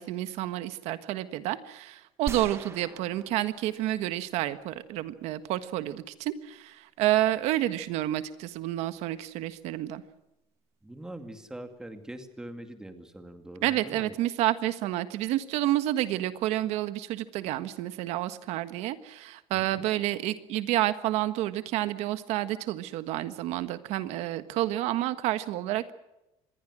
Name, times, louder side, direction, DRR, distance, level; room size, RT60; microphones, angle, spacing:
voice 1, 0.0-10.0 13.6-25.9, right 14 dB, 80° right, 11 dB, 1.5 m, -29 dB
sound 1, 2.3-4.5, right 4 dB, 25° right, 1.6 m, -41 dB
voice 2, 10.8-14.2 19.5-19.9, right 1 dB, 5° right, 7 dB, 2.2 m, -43 dB
26.5 x 21.5 x 6.3 m, 0.94 s
cardioid pair, 170°, 11 cm